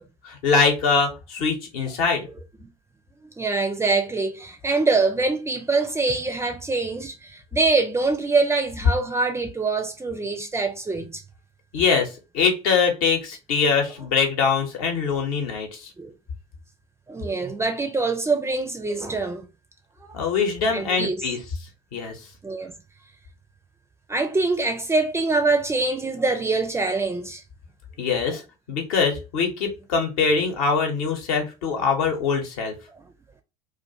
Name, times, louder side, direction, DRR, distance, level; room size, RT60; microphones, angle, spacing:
voice 1, 0.2-2.3 11.7-15.9 20.1-21.4 21.9-22.2 28.0-28.4 28.7-32.7, left 5 dB, 60° left, 1.0 m, -23 dB
voice 2, 3.2-11.2 16.0-16.1 17.1-19.5 20.1-20.2 20.7-21.3 22.4-22.7 24.1-27.4 32.9-33.1, right 3 dB, 15° right, 0.5 m, -24 dB
2.4 x 2.4 x 2.7 m
figure-of-eight pair, 70°, 21 cm